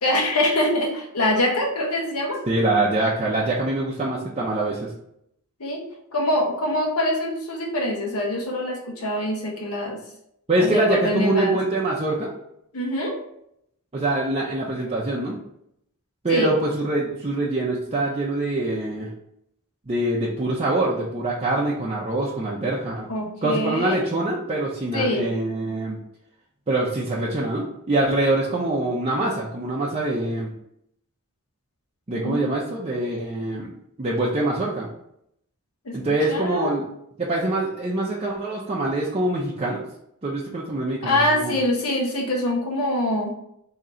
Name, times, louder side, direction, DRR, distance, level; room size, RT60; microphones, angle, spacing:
voice 1, 0.0-2.4 5.6-5.8 6.1-10.0 10.6-11.6 12.7-13.2 16.3-16.5 23.1-24.0 24.9-25.3 32.2-32.5 35.8-36.0 36.3-36.8 41.0-43.3, left 1 dB, 90° left, 0 dB, 1.1 m, -24 dB
voice 2, 2.5-4.9 10.5-12.3 13.9-15.4 16.2-19.1 19.9-23.1 23.4-26.0 26.7-30.5 32.1-33.7 34.0-34.9 35.9-36.8 37.2-39.8 40.2-41.6, right 2 dB, 30° right, -5 dB, 0.6 m, -24 dB
3.8 x 2.9 x 4.3 m, 0.75 s
head